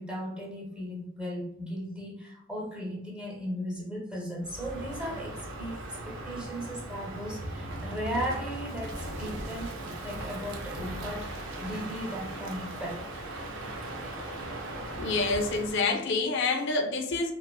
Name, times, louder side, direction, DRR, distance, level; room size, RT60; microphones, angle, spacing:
voice 1, 0.0-13.0, equal, 5° right, -2 dB, 0.5 m, -37 dB
Crow, 4.4-15.9, right 1 dB, 70° right, 0.4 m, -38 dB
voice 2, 15.0-17.3, left 3 dB, 65° left, 5 dB, 0.3 m, -27 dB
2.4 x 2.4 x 2.2 m, 0.79 s
head